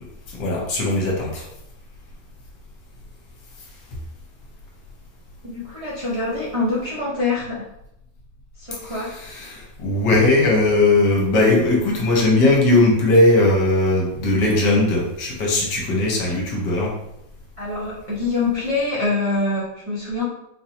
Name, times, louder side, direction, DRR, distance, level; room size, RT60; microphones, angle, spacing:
voice 1, 0.3-1.5 8.8-16.9, left 2 dB, 70° left, -2 dB, 1.5 m, -19 dB
voice 2, 5.4-7.7 8.6-9.1 17.6-20.2, left 3 dB, 55° right, -9 dB, 0.3 m, -25 dB
4.2 x 2.7 x 2.8 m, 0.82 s
omnidirectional pair, 2.1 m